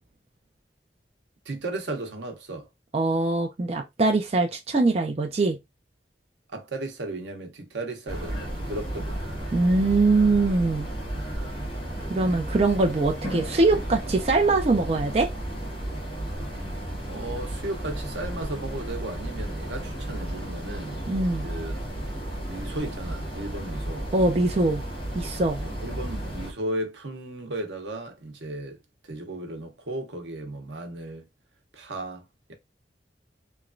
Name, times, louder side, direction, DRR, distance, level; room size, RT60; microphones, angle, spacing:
voice 1, 1.5-2.7 6.5-9.2 17.1-21.0 21.4-21.8 22.5-24.1 25.6-28.8 29.0-31.2 31.7-32.5, right 2 dB, 85° right, 0.8 m, -35 dB
voice 2, 2.9-5.6 9.5-10.9 12.1-15.3 21.1-21.5 24.1-24.8 25.1-25.6, right 2 dB, 35° right, 0.4 m, -22 dB
sound 1, 8.1-26.5, right 1 dB, 30° left, 1.0 m, -33 dB
3.0 x 2.2 x 2.4 m
head